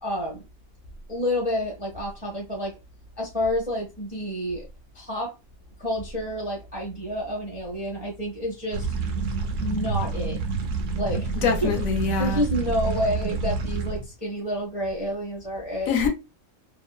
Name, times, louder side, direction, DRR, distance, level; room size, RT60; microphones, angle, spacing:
voice 1, 0.0-0.4 1.1-2.7 3.2-4.6 4.9-5.3 5.8-8.9 9.6-10.4 10.9-11.3 11.6-11.7 12.2-16.0, equal, 5° right, 0.8 m, -29 dB
sound 1, 8.7-14.1, right 4 dB, 70° right, 0.9 m, -28 dB
voice 2, 11.3-12.5 15.9-16.1, left 7 dB, 80° left, 1.1 m, -24 dB
2.9 x 2.5 x 2.3 m
omnidirectional pair, 1.4 m